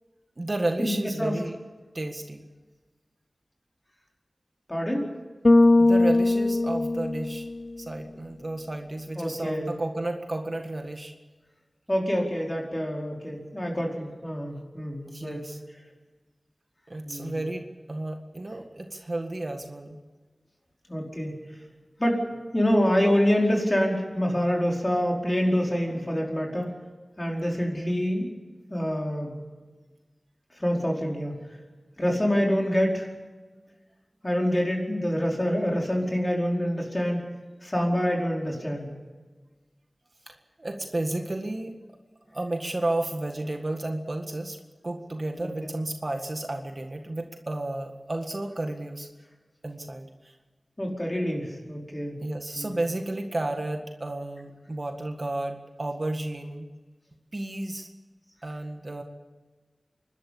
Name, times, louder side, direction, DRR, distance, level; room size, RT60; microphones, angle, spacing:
voice 1, 0.4-1.6 1.9-2.4 5.8-7.5 7.8-11.1 15.1-15.6 16.9-20.0 40.3-41.7 42.3-44.6 44.8-49.1 49.6-50.3 52.2-56.7 57.3-57.9 58.4-59.0, right 2 dB, 45° right, 4 dB, 1.8 m, -32 dB
voice 2, 4.7-5.1 9.2-9.7 11.9-15.4 17.0-17.4 20.9-21.4 22.0-22.2 22.5-26.7 27.2-28.3 28.7-29.4 30.6-31.4 32.0-33.1 34.2-37.2 37.6-38.9 45.4-45.7 50.8-52.2 52.5-52.8, equal, 25° left, 0 dB, 4.9 m, -26 dB
Bass guitar, 5.4-7.8, left 2 dB, 45° left, 0.7 m, -20 dB
28.0 x 12.5 x 8.6 m, 1.3 s
wide cardioid pair, 75°, 0 cm